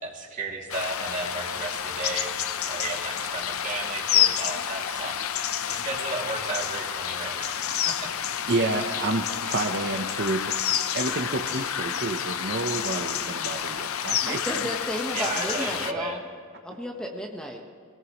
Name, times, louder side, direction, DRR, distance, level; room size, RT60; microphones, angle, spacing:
voice 1, 0.0-2.3 2.7-5.1 5.6-7.9 10.6-10.7 15.1-16.2, right 3 dB, 35° right, -2 dB, 2.5 m, -34 dB
sound 1, 0.7-15.9, left 9 dB, 85° left, 0.6 m, -29 dB
voice 2, 8.5-14.7, right 2 dB, 55° right, 4 dB, 0.8 m, -29 dB
voice 3, 14.2-16.2 16.6-17.6, equal, 5° left, 1 dB, 1.1 m, -33 dB
24.5 x 18.0 x 3.1 m, 2.2 s
head